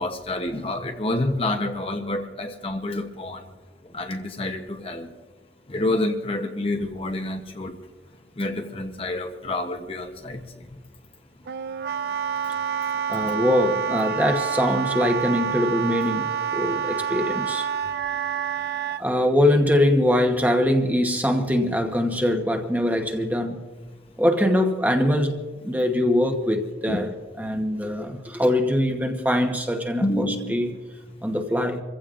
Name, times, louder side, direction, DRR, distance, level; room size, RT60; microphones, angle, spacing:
voice 1, 0.0-3.4 3.9-5.1 5.7-7.8 8.4-10.4 26.9-27.1 30.0-30.7, left 1 dB, 30° left, 5 dB, 0.8 m, -28 dB
Wind instrument woodwind instrument, 11.5-19.0, right 8 dB, 60° right, 0.3 m, -28 dB
voice 2, 13.1-17.7 19.0-23.6 24.2-25.4 25.6-30.7 31.2-31.8, left 1 dB, 10° right, 3 dB, 1.0 m, -23 dB
27.5 x 15.5 x 2.5 m, 1.4 s
head